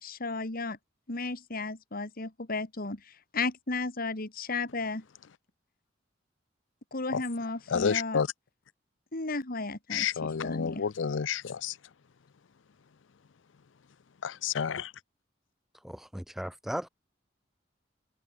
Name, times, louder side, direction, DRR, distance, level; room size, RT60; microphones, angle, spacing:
voice 1, 0.0-0.8 1.1-5.0 6.9-8.2 9.1-10.9, left 3 dB, 50° left, 2.3 m, -34 dB
voice 2, 7.7-8.3 9.9-11.7 14.2-14.9, left 6 dB, 80° left, 0.5 m, -30 dB
voice 3, 15.8-16.9, equal, ahead, 0.4 m, -36 dB
head